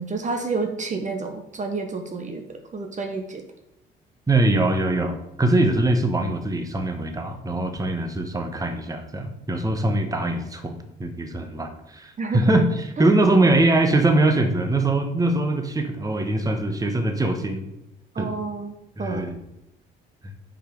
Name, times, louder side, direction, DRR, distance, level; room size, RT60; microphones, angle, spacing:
voice 1, 0.0-3.4 12.2-12.5 13.0-13.1 18.1-19.3, right 4 dB, 40° right, 5 dB, 1.0 m, -30 dB
voice 2, 4.3-17.7 18.2-18.3 19.0-19.4 20.2-20.3, right 2 dB, 20° right, 6 dB, 1.1 m, -22 dB
6.1 x 5.1 x 5.1 m, 0.85 s
supercardioid pair, 75°, 20 cm